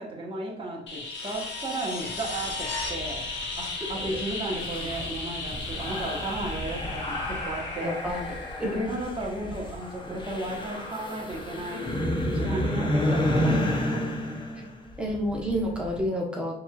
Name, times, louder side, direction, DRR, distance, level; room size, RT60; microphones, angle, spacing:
voice 1, 0.0-2.5 2.9-8.2 8.6-11.8 12.3-14.1, right 2 dB, 25° right, -3 dB, 1.3 m, -34 dB
sound 1, 0.9-9.5 11.9-12.0, left 3 dB, 65° left, 1.0 m, -36 dB
sound 2, 2.1-16.0, left 1 dB, 25° left, 0.8 m, -31 dB
voice 2, 7.8-8.3 8.6-8.7 15.0-16.6, equal, 5° right, -2 dB, 1.1 m, -29 dB
5.2 x 3.0 x 2.4 m, 0.68 s
cardioid pair, 90°, 21 cm